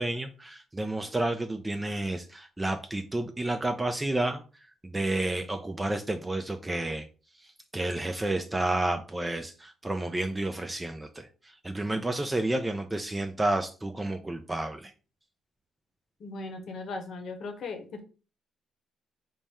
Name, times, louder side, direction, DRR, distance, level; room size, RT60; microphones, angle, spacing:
voice 1, 0.0-7.1 7.4-14.9, right 2 dB, 15° right, 6 dB, 0.4 m, -31 dB
voice 2, 16.2-18.0, left 3 dB, 65° left, 6 dB, 0.8 m, -38 dB
4.1 x 2.1 x 3.5 m, 0.35 s
cardioid pair, 90°, 0 cm